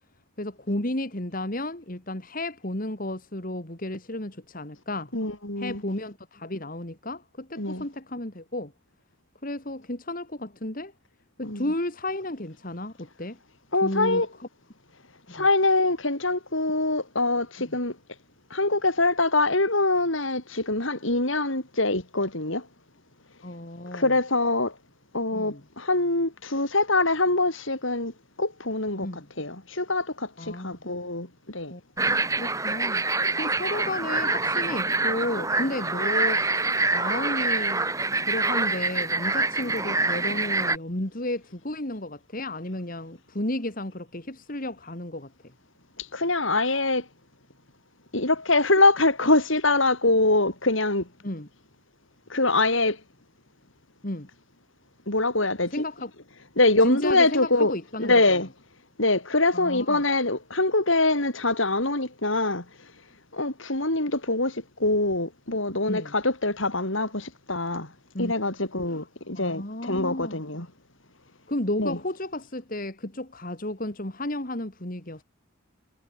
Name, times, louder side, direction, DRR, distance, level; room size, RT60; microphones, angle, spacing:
voice 1, 0.4-5.1 5.6-8.7 9.4-10.9 11.4-13.4 13.8-14.5 15.3-15.4 17.7-17.8 23.4-24.2 25.3-25.6 29.0-29.3 30.4-30.8 31.7-33.0 33.3-36.5 36.9-37.9 38.2-45.3 51.2-51.5 54.0-54.3 55.7-56.1 56.8-58.4 59.5-60.0 65.9-66.1 68.1-68.3 68.9-69.0 69.3-70.5 71.5-75.2, left 1 dB, 40° left, 2.8 m, -33 dB
voice 2, 5.1-5.8 7.6-7.8 11.4-11.6 13.7-14.3 15.3-18.0 18.5-22.7 23.9-24.7 25.1-28.1 28.4-31.7 46.0-47.0 48.1-51.1 52.3-53.0 55.1-55.8 56.6-57.7 58.0-58.5 59.0-62.6 63.3-67.9 68.2-70.7 71.8-72.0, left 2 dB, 70° left, 6.5 m, -24 dB
sound 1, 32.0-40.8, right 3 dB, 15° right, 1.6 m, -26 dB
head